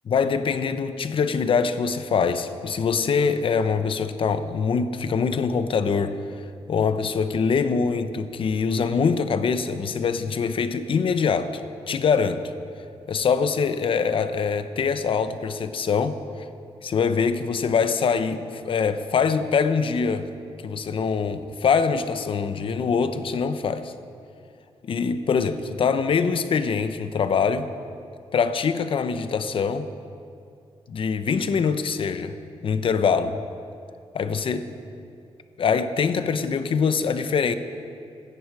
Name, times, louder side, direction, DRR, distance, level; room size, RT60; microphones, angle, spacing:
voice 1, 0.1-6.2 6.7-11.6 11.9-12.4 13.1-16.2 16.8-20.3 20.6-23.9 24.8-27.7 28.3-29.9 30.9-32.3 32.6-33.4 34.1-34.7 35.6-37.6, left 5 dB, 55° left, 10 dB, 0.9 m, -23 dB
26.0 x 10.0 x 4.8 m, 2.5 s
wide cardioid pair, 125°, 10 cm